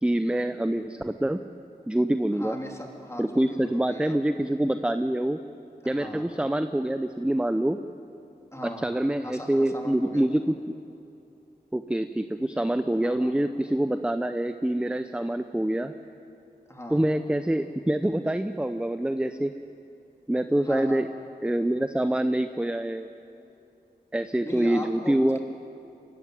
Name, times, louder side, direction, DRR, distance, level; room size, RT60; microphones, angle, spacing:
voice 1, 0.0-1.4 1.9-2.6 3.2-5.4 5.9-7.8 8.8-10.8 11.7-15.9 16.9-19.5 20.3-21.1 21.4-23.1 24.1-25.4, right 1 dB, 5° right, 10 dB, 0.6 m, -26 dB
voice 2, 2.3-4.2 5.8-6.3 8.5-8.9 9.2-10.2 12.9-13.4 16.7-17.0 20.6-21.0 24.4-25.4, left 1 dB, 15° left, 1 dB, 3.2 m, -38 dB
24.0 x 14.5 x 9.5 m, 2.7 s
wide cardioid pair, 70°, 17 cm